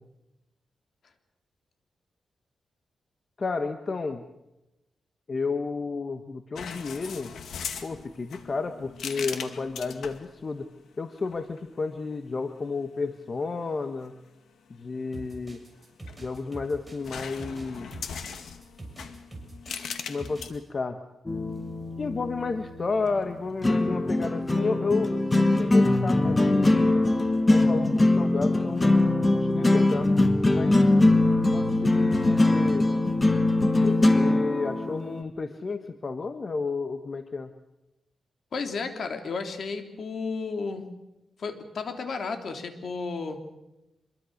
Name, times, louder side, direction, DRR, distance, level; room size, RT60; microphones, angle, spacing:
voice 1, 3.4-4.2 5.3-7.3 7.8-10.7 11.0-14.1 14.7-15.6 16.2-17.9 20.1-21.0 22.0-27.1 27.5-30.1 30.5-30.9 31.5-32.9 33.8-37.5, left 4 dB, 40° left, 7 dB, 1.4 m, -32 dB
sound 1, 6.6-10.3 11.2-11.6 15.8-16.6 17.0-20.5, left 7 dB, 90° left, 2.1 m, -39 dB
sound 2, 15.1-20.6, right 2 dB, 10° right, 6.8 m, -44 dB
sound 3, 21.3-35.2, left 2 dB, 20° left, 2.0 m, -22 dB
voice 2, 38.5-41.0 41.4-43.4, left 4 dB, 60° left, 6 dB, 3.4 m, -33 dB
26.5 x 23.0 x 6.6 m, 0.94 s
cardioid pair, 105°, 0 cm